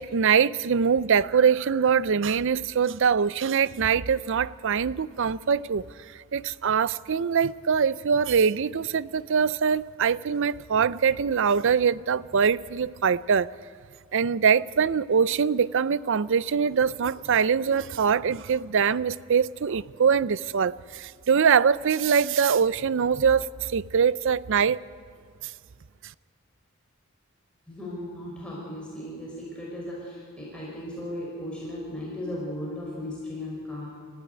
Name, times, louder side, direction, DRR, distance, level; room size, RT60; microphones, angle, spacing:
voice 1, 0.0-5.8 6.3-13.5 14.1-24.8, right 6 dB, 65° right, 0.5 m, -23 dB
voice 2, 27.7-33.9, left 1 dB, 5° left, 5.5 m, -36 dB
27.5 x 14.5 x 9.6 m
head